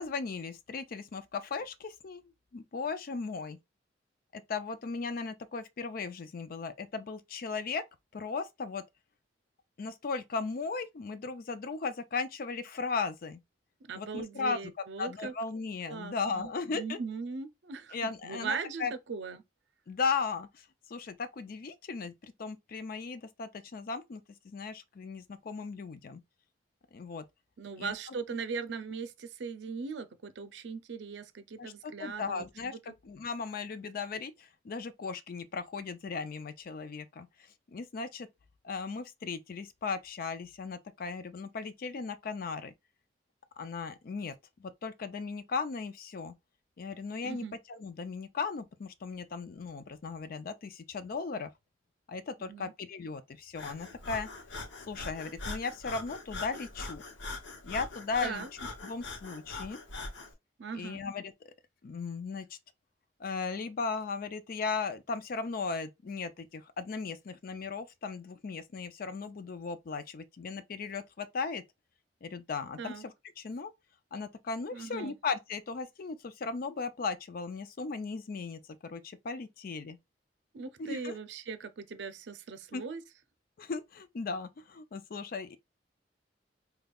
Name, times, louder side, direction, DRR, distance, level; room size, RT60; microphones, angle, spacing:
voice 1, 0.0-3.6 4.3-7.8 8.1-8.8 9.8-13.4 13.9-14.6 15.0-17.0 17.9-18.9 19.9-26.2 26.9-27.2 27.8-27.9 31.6-37.3 37.7-38.3 38.6-42.7 43.6-44.3 44.6-46.3 46.8-51.5 52.1-54.3 54.9-57.0 57.6-58.5 58.8-59.8 60.7-61.3 61.8-62.5 63.2-71.6 72.2-73.7 74.1-80.0 80.8-81.2 82.7-82.8 83.6-85.6, left 4 dB, 55° left, 0.4 m, -37 dB
voice 2, 13.8-15.3 15.9-19.4 27.6-32.5 32.9-33.0 47.2-47.5 52.4-52.7 58.2-58.5 60.6-61.0 72.8-73.0 74.7-75.1 80.5-83.0, right 5 dB, 75° right, 0.5 m, -39 dB
Breathing, 53.5-60.3, left 3 dB, 80° left, 0.8 m, -42 dB
5.1 x 2.3 x 2.3 m
head